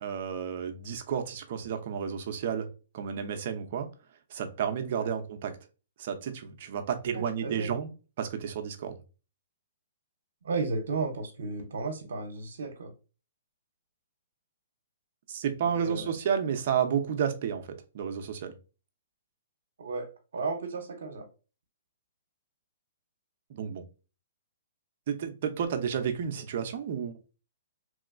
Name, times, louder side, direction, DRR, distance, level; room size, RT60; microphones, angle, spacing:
voice 1, 0.0-2.7 2.9-3.9 4.3-5.5 6.0-7.9 8.2-8.9 15.3-17.6 17.9-18.5 23.5-23.8 25.1-27.2, right 7 dB, 50° right, 0.7 m, -31 dB
voice 2, 7.1-7.7 10.4-12.9 15.6-16.1 19.8-20.1 20.3-21.3, right 3 dB, 75° right, 0.9 m, -34 dB
3.1 x 2.8 x 2.5 m
hypercardioid pair, 155°, 0 cm